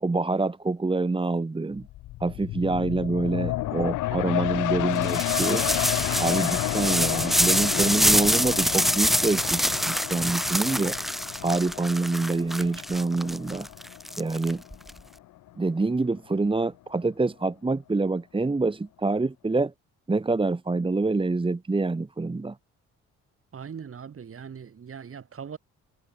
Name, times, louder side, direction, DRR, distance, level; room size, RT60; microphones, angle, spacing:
voice 1, 0.0-1.9 2.2-5.7 6.2-11.0 11.4-13.7 14.2-14.6 15.6-19.7 20.1-22.6, right 3 dB, 15° right, 1.5 m, -26 dB
sound 1, 1.8-15.1 15.5-15.6, left 16 dB, 90° left, 3.1 m, -31 dB
sound 2, 5.0-14.9, equal, ahead, 0.9 m, -26 dB
voice 2, 23.5-25.6, right 7 dB, 45° right, 6.9 m, -40 dB
cardioid pair, 90°, 30 cm